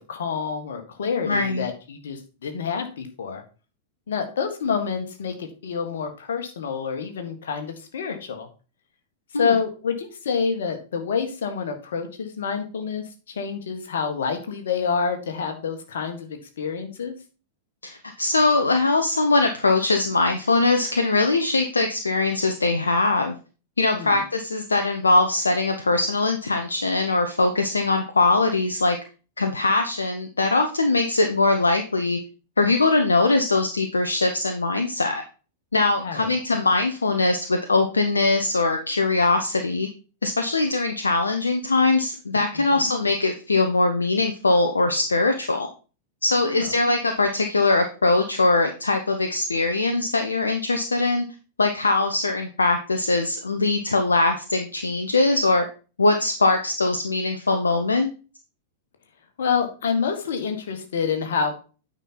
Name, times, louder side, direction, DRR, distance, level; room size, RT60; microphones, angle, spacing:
voice 1, 0.1-3.4 4.1-8.5 9.4-17.1 23.9-24.2 36.0-36.3 42.5-42.9 46.4-46.6 59.4-61.6, left 6 dB, 60° left, 5 dB, 1.7 m, -28 dB
voice 2, 1.3-1.7 9.3-9.6 17.8-23.3 23.8-29.0 29.4-32.2 32.6-35.2 35.7-39.9 40.2-45.7 46.2-51.2 51.6-55.6 56.0-58.1, left 3 dB, 75° left, 5 dB, 0.8 m, -21 dB
9.0 x 5.4 x 4.4 m, 0.35 s
figure-of-eight pair, 95°, 0 cm